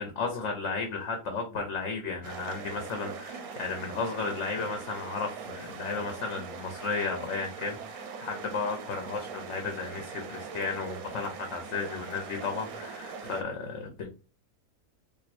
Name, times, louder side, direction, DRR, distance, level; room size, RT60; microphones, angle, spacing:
voice 1, 0.0-14.1, left 4 dB, 60° left, 4 dB, 1.0 m, -34 dB
sound 1, 2.2-13.4, right 5 dB, 85° right, 1.2 m, -42 dB
4.4 x 2.7 x 2.5 m, 0.34 s
omnidirectional pair, 1.5 m